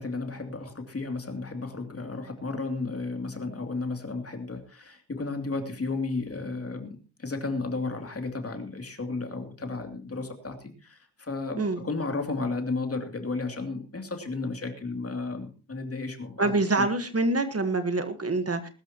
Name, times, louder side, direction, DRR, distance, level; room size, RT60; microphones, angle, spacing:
voice 1, 0.0-16.9, left 3 dB, 35° left, 5 dB, 2.8 m, -33 dB
voice 2, 16.4-18.7, right 2 dB, 35° right, 10 dB, 1.4 m, -26 dB
21.0 x 13.0 x 2.9 m, 0.34 s
wide cardioid pair, 120°, 40 cm